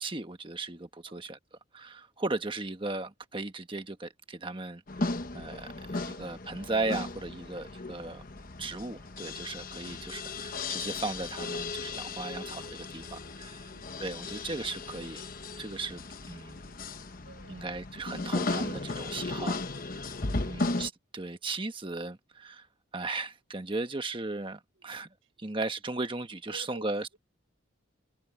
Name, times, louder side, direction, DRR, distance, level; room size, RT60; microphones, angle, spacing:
voice 1, 0.0-1.4 1.7-8.2 8.6-13.6 14.0-15.2 15.6-16.0 16.3-16.6 17.5-19.6 20.4-22.7 22.9-25.1 25.4-27.2, right 3 dB, 25° right, 1.3 m, -36 dB
sound 1, 4.9-20.9, left 3 dB, 45° left, 1.1 m, -36 dB
voice 2, 13.6-14.0 17.2-17.7 19.8-20.8 24.7-24.9 25.2-25.5 26.5-27.2, right 2 dB, 85° right, 6.5 m, -54 dB
head